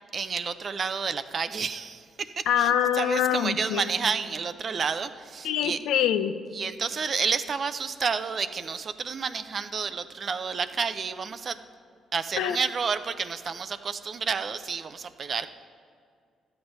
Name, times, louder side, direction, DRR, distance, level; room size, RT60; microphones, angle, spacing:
voice 1, 0.1-5.8 6.5-11.6 12.1-15.5, right 5 dB, 45° right, 12 dB, 0.5 m, -30 dB
voice 2, 2.5-3.8 5.4-6.3 12.4-12.6, left 10 dB, 85° left, 10 dB, 0.5 m, -24 dB
12.5 x 8.0 x 5.3 m, 2.2 s
cardioid pair, 90°, 0 cm